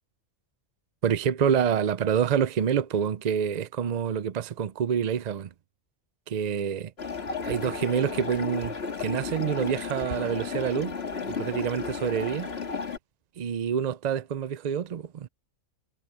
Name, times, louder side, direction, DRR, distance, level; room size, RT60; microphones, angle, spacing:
voice 1, 1.0-5.5 6.3-6.9 7.4-11.0 11.2-12.5 13.4-15.3, right 8 dB, 65° right, 0.4 m, -27 dB
sound 1, 7.0-13.0, left 5 dB, 50° left, 2.0 m, -33 dB
omnidirectional pair, 1.4 m